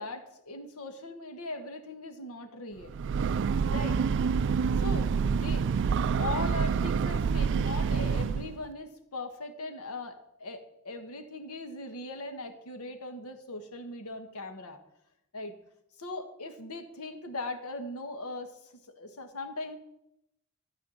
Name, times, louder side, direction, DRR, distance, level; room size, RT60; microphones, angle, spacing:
voice 1, 0.0-3.0 3.7-4.0 4.8-5.7 6.2-14.8 15.3-15.5 16.0-19.8, left 2 dB, 90° left, 7 dB, 1.5 m, -39 dB
Breathing / Train, 2.8-8.6, right 6 dB, 55° right, 0.3 m, -27 dB
12.5 x 5.0 x 8.5 m, 0.83 s
head